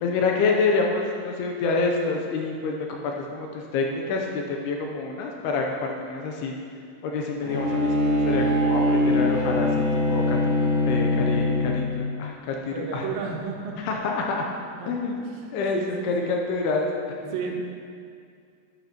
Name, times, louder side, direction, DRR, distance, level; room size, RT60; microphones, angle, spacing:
voice 1, 0.0-6.5 7.0-10.4 10.8-13.0 13.9-14.4 14.9-15.2 15.5-17.3, left 4 dB, 80° left, 1 dB, 2.5 m, -27 dB
Bowed string instrument, 7.4-12.1, left 1 dB, 60° right, 0.8 m, -23 dB
voice 2, 12.7-13.8 14.8-14.9 15.2-16.3 17.3-17.6, right 6 dB, 90° right, 0 dB, 3.4 m, -33 dB
10.5 x 10.5 x 2.9 m, 2.2 s
omnidirectional pair, 5.0 m